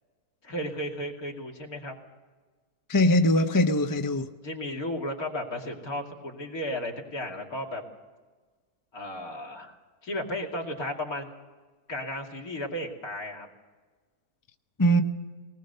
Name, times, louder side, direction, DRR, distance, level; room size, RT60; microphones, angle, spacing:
voice 1, 0.4-1.9 4.4-7.8 8.9-9.8 10.0-11.3 11.9-13.5, left 1 dB, 60° left, 0 dB, 3.0 m, -34 dB
voice 2, 2.9-4.3 14.8-15.0, equal, 25° left, 7 dB, 0.4 m, -21 dB
21.0 x 19.5 x 6.8 m, 1.4 s
omnidirectional pair, 1.8 m